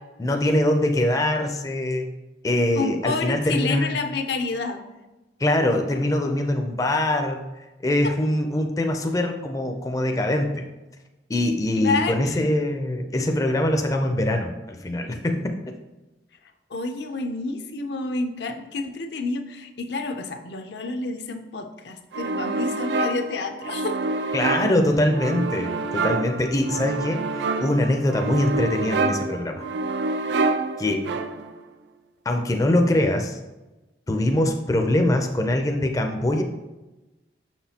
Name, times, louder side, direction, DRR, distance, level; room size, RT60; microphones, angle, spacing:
voice 1, 0.2-2.1 2.4-3.9 5.4-7.4 7.8-10.6 11.3-15.5 24.3-29.6 30.8-31.1 32.3-33.4 34.1-36.4, left 1 dB, 20° left, 4 dB, 0.4 m, -23 dB
voice 2, 2.7-4.8 11.8-12.4 16.7-24.0, left 3 dB, 75° left, 6 dB, 0.6 m, -29 dB
sound 1, 22.1-31.6, right 3 dB, 85° right, 0.4 m, -27 dB
6.3 x 6.0 x 2.8 m, 1.1 s
head